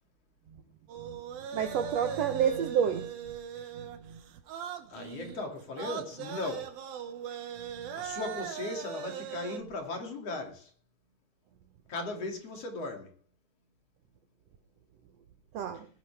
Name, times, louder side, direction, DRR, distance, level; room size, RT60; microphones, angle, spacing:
sound 1, 0.9-9.6, right 8 dB, 90° right, 3.4 m, -40 dB
voice 1, 1.5-3.4 3.7-4.2 7.8-8.0 15.5-15.9, right 8 dB, 70° right, 1.6 m, -30 dB
voice 2, 4.9-6.8 7.9-10.7 11.9-13.2, left 2 dB, 45° left, 3.5 m, -37 dB
20.0 x 10.5 x 3.5 m
omnidirectional pair, 4.0 m